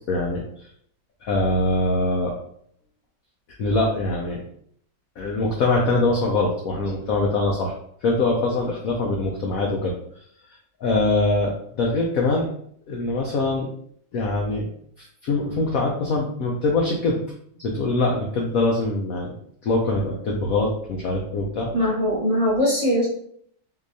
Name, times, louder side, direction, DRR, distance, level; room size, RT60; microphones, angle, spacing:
voice 1, 0.1-0.4 1.2-2.3 3.6-4.4 5.2-7.7 8.0-9.9 10.8-12.5 12.9-13.7 14.1-14.7 15.0-17.2 17.6-19.3 19.6-21.7, left 2 dB, 80° left, -1 dB, 0.7 m, -23 dB
voice 2, 21.7-23.1, equal, 25° right, -9 dB, 1.1 m, -21 dB
3.8 x 2.8 x 2.6 m, 0.65 s
omnidirectional pair, 2.1 m